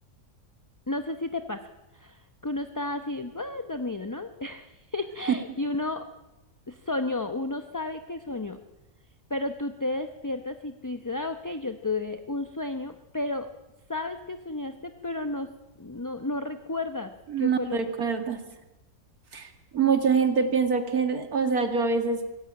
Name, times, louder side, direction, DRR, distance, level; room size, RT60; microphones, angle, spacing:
voice 1, 0.9-1.7 1.9-6.0 6.7-8.6 9.3-13.5 13.9-15.5 15.8-17.9, left 2 dB, 20° left, 8 dB, 0.6 m, -32 dB
voice 2, 17.3-18.4 19.3-22.3, right 5 dB, 80° right, 7 dB, 2.6 m, -25 dB
24.5 x 15.5 x 8.8 m, 1.0 s
omnidirectional pair, 1.6 m